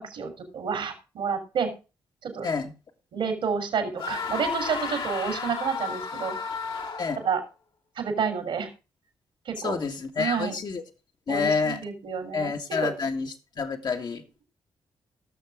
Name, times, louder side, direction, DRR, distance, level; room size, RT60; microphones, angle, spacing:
voice 1, 0.0-1.7 2.2-2.5 3.1-6.3 7.2-7.4 8.0-8.7 9.4-9.8 10.2-10.5 11.3-12.5 12.8-12.9, right 6 dB, 70° right, 3.2 m, -29 dB
sound 1, 4.0-7.3, left 5 dB, 70° left, 2.6 m, -33 dB
voice 2, 9.6-10.8 11.3-11.8 12.3-14.4, left 5 dB, 55° left, 1.8 m, -28 dB
18.0 x 6.7 x 3.6 m
supercardioid pair, 45°, 9 cm